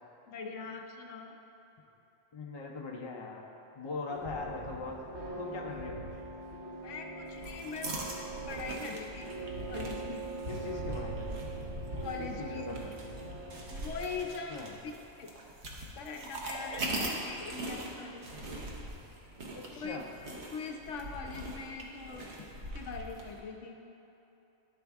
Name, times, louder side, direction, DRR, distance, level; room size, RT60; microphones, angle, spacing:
voice 1, 0.3-1.3 6.8-8.2 8.5-9.3 9.7-10.3 12.0-12.7 13.7-14.9 15.2-15.3 15.9-18.4 19.7-20.0 20.5-22.3 22.5-23.8, left 4 dB, 70° left, 3 dB, 0.9 m, -42 dB
voice 2, 2.3-3.5 3.7-5.1 5.4-6.0 10.5-11.4 12.2-12.9 14.5-14.7 19.5-20.1, left 3 dB, 40° left, 0 dB, 0.4 m, -40 dB
sound 1, 4.1-14.3, right 2 dB, 35° right, 1.3 m, -42 dB
sound 2, 7.3-23.4, right 1 dB, 60° right, 1.1 m, -42 dB
11.5 x 4.3 x 3.5 m, 3.0 s
omnidirectional pair, 1.3 m